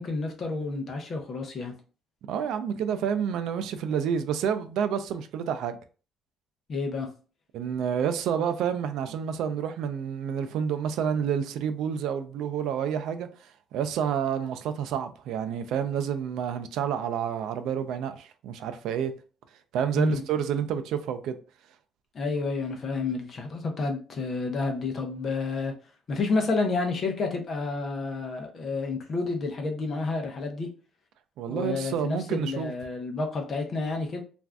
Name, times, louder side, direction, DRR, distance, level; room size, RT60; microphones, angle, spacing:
voice 1, 0.0-1.7 6.7-7.1 20.0-20.2 22.1-25.7 26.1-30.7 31.5-34.2, left 3 dB, 35° left, 0.6 m, -30 dB
voice 2, 2.3-5.8 7.5-19.1 19.7-21.4 31.4-32.7, right 8 dB, 70° right, 0.3 m, -29 dB
2.5 x 2.3 x 3.2 m
cardioid pair, 170°, 0 cm